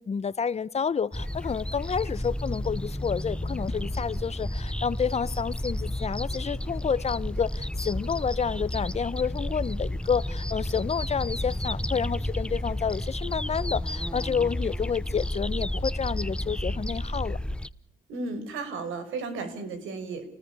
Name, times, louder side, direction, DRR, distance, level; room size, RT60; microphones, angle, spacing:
voice 1, 0.0-17.4, left 6 dB, 35° left, 1.0 m, -29 dB
sound 1, 1.1-17.7, left 1 dB, 5° left, 0.9 m, -31 dB
voice 2, 18.1-20.3, right 3 dB, 85° right, 5.7 m, -34 dB
28.5 x 19.5 x 6.8 m
cardioid pair, 90°, 20 cm